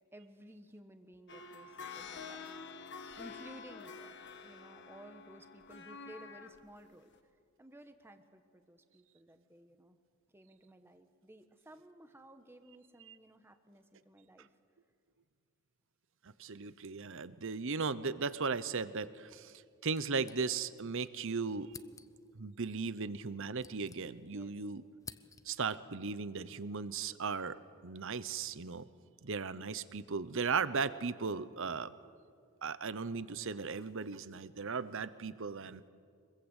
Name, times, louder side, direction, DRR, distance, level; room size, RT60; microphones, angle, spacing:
voice 1, 0.1-4.1 4.4-7.1 7.6-10.0 10.3-14.5 24.3-24.7, right 1 dB, 10° right, 7 dB, 1.2 m, -56 dB
sound 1, 1.3-6.6 7.1-7.2, left 5 dB, 50° left, 1.5 m, -48 dB
voice 2, 16.4-19.5 19.8-21.7 22.3-24.8 25.5-28.9 29.2-31.9 32.6-35.8, right 5 dB, 60° right, 15 dB, 0.9 m, -37 dB
sound 2, 19.9-20.9 21.2-21.3 21.7-22.4 23.2-24.5 24.7-25.7, left 5 dB, 15° left, 0.6 m, -53 dB
25.0 x 21.5 x 8.2 m, 2.2 s
head